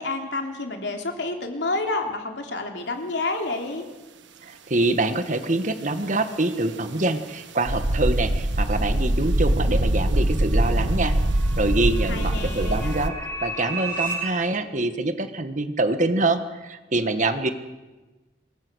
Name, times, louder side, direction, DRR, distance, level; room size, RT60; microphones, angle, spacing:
voice 1, 0.0-3.9 12.1-12.9, left 2 dB, 70° left, 3 dB, 3.4 m, -29 dB
voice 2, 4.4-11.2 11.6-17.5, right 2 dB, 45° right, 9 dB, 1.6 m, -25 dB
sound 1, 7.7-13.1, right 1 dB, 85° right, 1.4 m, -23 dB
sound 2, 9.8-14.1, right 2 dB, 15° left, 6.5 m, -35 dB
27.0 x 21.5 x 6.4 m, 1.2 s
head